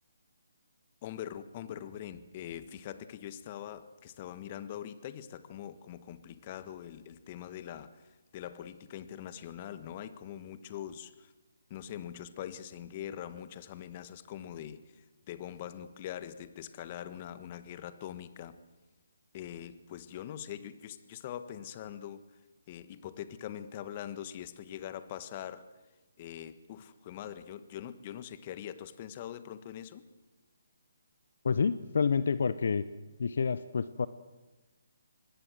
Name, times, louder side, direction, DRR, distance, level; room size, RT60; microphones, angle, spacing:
voice 1, 1.0-11.3 11.7-18.6 19.3-22.2 22.7-25.7 26.2-30.0, left 10 dB, 35° left, 13 dB, 1.5 m, -43 dB
voice 2, 31.4-32.9 33.2-34.1, left 5 dB, 65° left, 16 dB, 0.8 m, -28 dB
24.5 x 20.0 x 7.7 m, 1.1 s
figure-of-eight pair, 145°, 0 cm